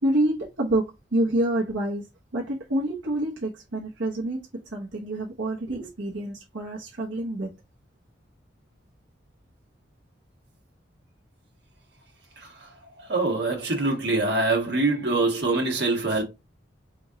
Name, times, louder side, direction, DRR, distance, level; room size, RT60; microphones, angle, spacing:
voice 1, 0.0-2.1 2.3-4.4 4.7-7.5, right 1 dB, 85° right, 1.0 m, -27 dB
voice 2, 13.0-16.2, right 2 dB, 60° right, 1.5 m, -24 dB
4.3 x 3.1 x 3.8 m
head